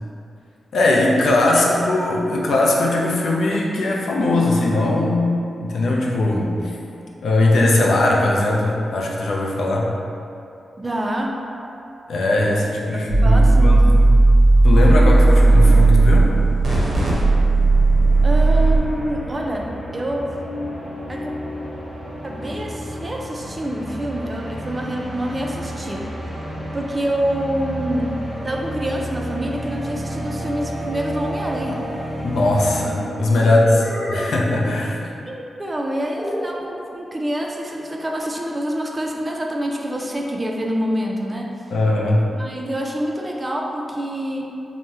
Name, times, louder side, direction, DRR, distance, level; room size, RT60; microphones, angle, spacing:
voice 1, 0.7-6.8 7.2-9.9 12.1-14.1 14.6-16.3 32.2-33.7 34.1-35.0 41.7-42.2, left 2 dB, 80° left, -2 dB, 0.4 m, -19 dB
voice 2, 10.8-11.3 12.9-13.8 18.2-20.4 21.1-21.3 22.2-26.1 26.7-28.1 28.4-31.8 33.3-33.8 35.3-41.5 42.3-44.5, right 1 dB, 25° right, 0 dB, 0.3 m, -26 dB
sound 1, 13.1-18.8, right 2 dB, 75° right, 0.6 m, -14 dB
sound 2, 16.5-33.4, equal, 60° left, 1.1 m, -32 dB
sound 3, 32.6-33.1 33.8-34.6 36.1-36.6, equal, 25° left, 0.9 m, -30 dB
2.8 x 2.0 x 3.4 m, 2.6 s
cardioid pair, 90°, 0 cm